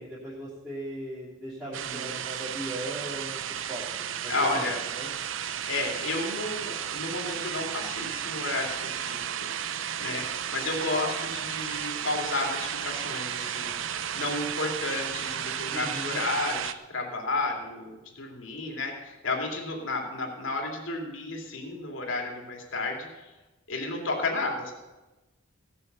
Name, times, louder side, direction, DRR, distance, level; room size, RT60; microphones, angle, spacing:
voice 1, 0.0-3.4 3.7-3.8 4.2-4.6 5.0-5.1 15.7-16.2, right 1 dB, 10° right, -10 dB, 2.8 m, -38 dB
voice 2, 1.6-2.1 4.3-4.8 5.6-9.3 9.6-13.7 14.1-23.2 23.7-24.7, left 2 dB, 70° left, 1 dB, 2.7 m, -32 dB
sound 1, 1.7-16.7, right 9 dB, 65° right, 0.6 m, -33 dB
16.0 x 7.1 x 6.8 m, 1.1 s
head